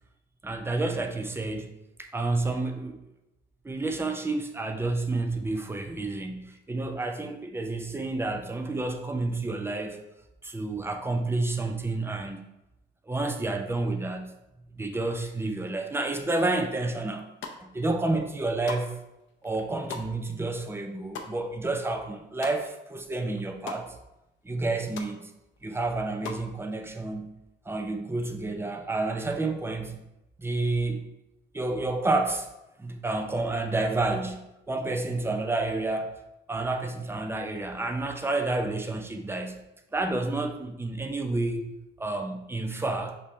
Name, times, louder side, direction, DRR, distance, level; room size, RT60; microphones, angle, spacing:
voice 1, 0.4-1.7 2.0-3.0 3.6-10.0 10.4-12.5 13.1-14.4 14.8-17.3 17.6-19.0 19.4-24.0 24.4-25.3 25.6-27.3 27.7-30.0 30.4-31.1 31.5-32.5 32.8-36.2 36.5-39.6 39.9-43.2, right 2 dB, 10° right, 5 dB, 0.5 m, -30 dB
sound 1, 17.2-17.9 18.2-23.0 23.2-23.8 24.2-24.3 24.6-25.1 25.5-26.5, left 5 dB, 75° left, 0.6 m, -41 dB
5.3 x 2.7 x 3.1 m, 0.92 s
cardioid pair, 90°, 20 cm